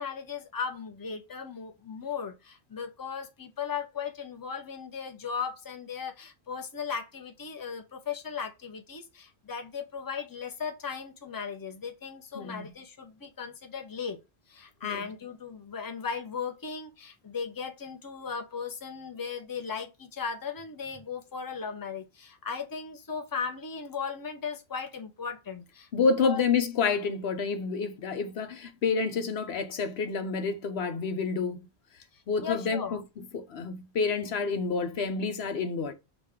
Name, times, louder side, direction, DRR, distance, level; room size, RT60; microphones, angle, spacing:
voice 1, 0.0-14.2 14.5-26.4 32.1-33.0, left 6 dB, 20° left, 0.7 m, -37 dB
voice 2, 25.9-31.7 32.3-33.0 33.3-35.9, left 5 dB, 80° left, 1.0 m, -29 dB
6.0 x 2.4 x 3.5 m
omnidirectional pair, 1.1 m